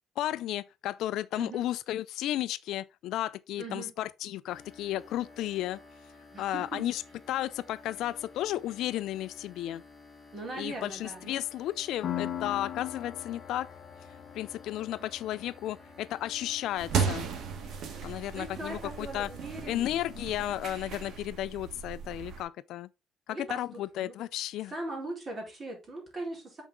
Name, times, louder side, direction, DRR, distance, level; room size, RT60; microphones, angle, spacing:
voice 1, 0.2-5.8 6.4-7.0 7.3-9.8 10.6-13.7 14.1-17.3 18.0-19.3 19.7-22.9 23.3-24.7, left 13 dB, 75° left, 0.4 m, -33 dB
voice 2, 3.6-3.9 6.3-6.9 10.3-11.4 15.0-15.1 18.3-20.0 23.3-24.2 24.7-26.6, right 2 dB, 30° right, 4.1 m, -40 dB
sound 1, 4.5-21.2, left 3 dB, 15° left, 2.5 m, -53 dB
Piano, 12.0-19.4, left 10 dB, 55° left, 0.9 m, -42 dB
sound 2, 16.8-22.4, right 7 dB, 60° right, 1.7 m, -35 dB
8.1 x 5.0 x 3.7 m
cardioid pair, 125°, 0 cm